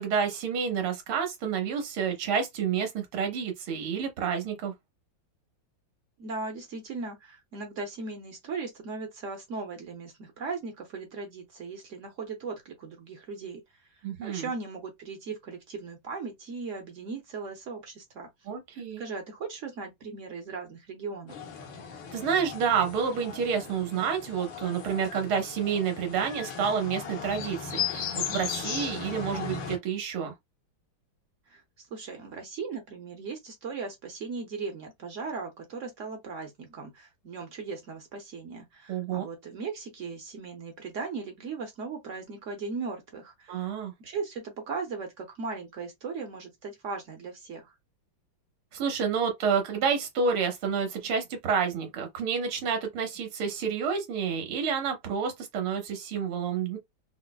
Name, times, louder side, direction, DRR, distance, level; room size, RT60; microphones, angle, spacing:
voice 1, 0.0-4.7 14.0-14.5 18.5-19.0 22.1-30.3 38.9-39.3 43.5-43.9 48.7-56.8, right 6 dB, 90° right, 1.8 m, -29 dB
voice 2, 6.2-13.6 14.2-18.3 18.7-21.4 31.5-43.7 44.0-47.7, right 4 dB, 60° right, 0.8 m, -38 dB
sound 1, 21.3-29.8, left 7 dB, 75° left, 1.6 m, -37 dB
4.9 x 2.0 x 2.2 m
omnidirectional pair, 2.2 m